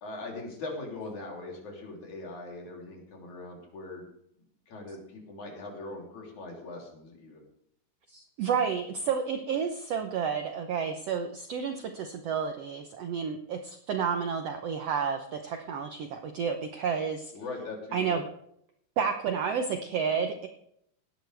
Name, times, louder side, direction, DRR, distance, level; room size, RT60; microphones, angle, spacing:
voice 1, 0.0-4.1 4.7-7.4 17.3-18.2, left 2 dB, 65° left, -1 dB, 4.6 m, -41 dB
voice 2, 8.1-17.3 17.9-18.2 19.0-20.5, right 6 dB, 70° right, 5 dB, 1.6 m, -31 dB
17.5 x 11.5 x 3.4 m, 0.72 s
omnidirectional pair, 3.8 m